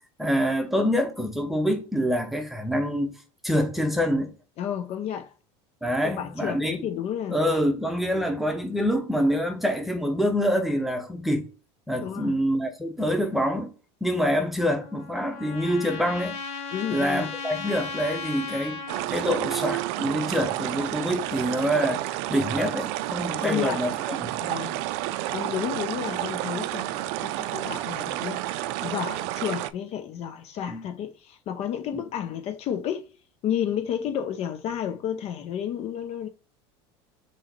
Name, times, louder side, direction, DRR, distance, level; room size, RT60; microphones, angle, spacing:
voice 1, 0.2-3.1 3.4-4.3 5.8-6.8 7.3-11.5 11.9-13.7 14.0-16.4 16.9-22.0 22.3-24.3 30.7-30.8 31.9-32.0, equal, ahead, 0.8 m, -26 dB
voice 2, 4.6-5.3 6.2-7.4 8.1-8.3 12.0-12.4 16.7-17.3 23.4-23.8 24.4-24.8 25.3-33.1 33.4-36.3, left 9 dB, 45° left, 0.5 m, -31 dB
Trumpet, 14.6-19.1, left 4 dB, 80° left, 0.9 m, -36 dB
sound 1, 18.9-29.7, right 15 dB, 70° right, 0.4 m, -30 dB
3.6 x 3.0 x 4.3 m
supercardioid pair, 110°, 15 cm